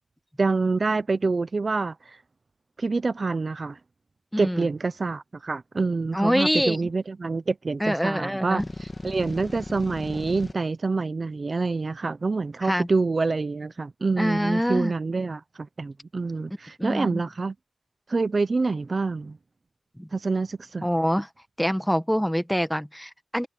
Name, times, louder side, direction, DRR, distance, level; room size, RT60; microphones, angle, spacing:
voice 1, 0.4-2.2 2.8-3.8 4.4-15.4 15.8-17.5 18.1-19.4 20.1-20.8, right 3 dB, 55° right, 0.7 m, -26 dB
voice 2, 4.3-4.6 6.1-6.9 7.8-8.7 12.6-12.9 14.2-14.9 16.8-17.2 20.0-20.1 20.8-21.3 21.6-23.5, equal, ahead, 1.2 m, -25 dB
sound 1, 8.6-10.5, left 2 dB, 30° left, 2.3 m, -37 dB
wide cardioid pair, 80°, 0 cm